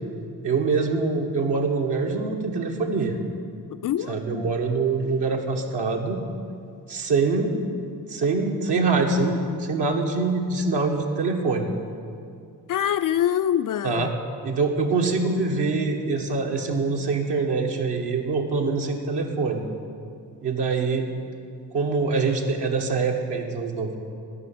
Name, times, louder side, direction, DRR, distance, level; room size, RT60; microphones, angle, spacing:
voice 1, 0.4-3.2 4.1-6.2 6.9-7.6 8.1-11.7 13.8-14.1 14.4-19.7 20.4-21.1 21.7-24.0, right 4 dB, 55° right, 1 dB, 1.7 m, -24 dB
voice 2, 3.8-4.5 12.7-14.2, left 10 dB, 45° left, 10 dB, 0.5 m, -25 dB
12.0 x 6.0 x 9.3 m, 2.4 s
hypercardioid pair, 40°, 47 cm